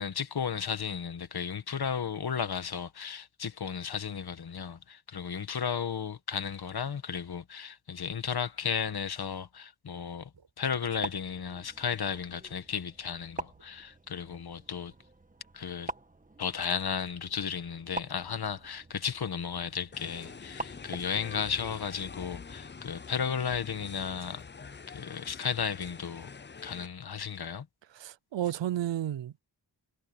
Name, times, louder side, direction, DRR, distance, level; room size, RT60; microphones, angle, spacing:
voice 1, 0.0-10.3 10.6-14.9 15.5-15.9 16.4-24.4 24.9-26.3 26.6-27.7, left 7 dB, 60° left, 1.5 m, -34 dB
sound 1, 10.3-11.1 11.4-11.5 11.9-12.3 12.8-12.9 13.5-13.7 14.3-14.4 16.6-17.1 18.5-18.8 19.2-19.4 20.0-20.4 20.7-21.2 22.4-22.6 23.0-23.3 24.0-24.8 25.1-25.5 25.8-26.7 27.1-27.4 28.4-28.5, right 5 dB, 65° right, 7.2 m, -59 dB
sound 2, 10.7-21.3, right 2 dB, 20° right, 1.6 m, -45 dB
sound 3, 19.9-26.9, left 5 dB, 25° left, 0.6 m, -45 dB
voice 2, 27.9-29.4, right 12 dB, 90° right, 0.7 m, -32 dB
wide cardioid pair, 90°, 43 cm